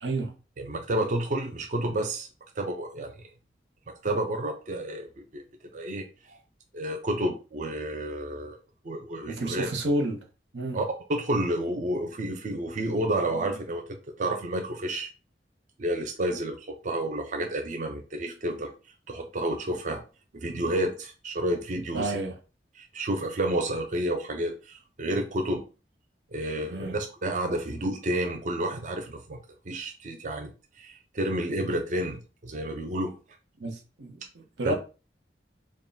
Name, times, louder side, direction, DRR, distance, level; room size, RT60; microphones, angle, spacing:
voice 1, 0.0-0.4 9.3-10.2 10.5-10.8 21.9-22.3 26.7-27.0 33.6-34.7, right 1 dB, 90° right, 0.9 m, -30 dB
voice 2, 0.6-2.3 2.6-3.2 3.9-5.1 5.3-5.4 5.7-6.4 6.7-8.6 8.8-9.7 10.7-10.8 11.1-13.8 14.2-15.1 15.8-18.7 19.1-20.0 20.3-22.2 22.8-25.6 26.3-29.4 29.7-30.5 30.8-33.1 34.6-34.7, right 1 dB, 45° right, 0.4 m, -30 dB
3.6 x 2.2 x 3.9 m
head